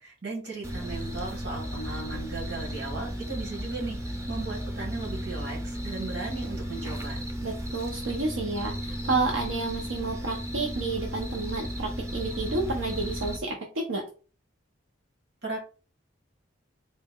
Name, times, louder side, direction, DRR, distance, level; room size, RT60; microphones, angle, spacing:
voice 1, 0.0-4.0 4.3-7.2 15.4-15.6, right 3 dB, 55° right, -1 dB, 1.5 m, -36 dB
sound 1, 0.6-13.4, equal, 15° right, 0.5 m, -34 dB
voice 2, 7.4-14.0, right 3 dB, 80° right, 0 dB, 0.7 m, -30 dB
4.1 x 2.3 x 3.6 m, 0.36 s
head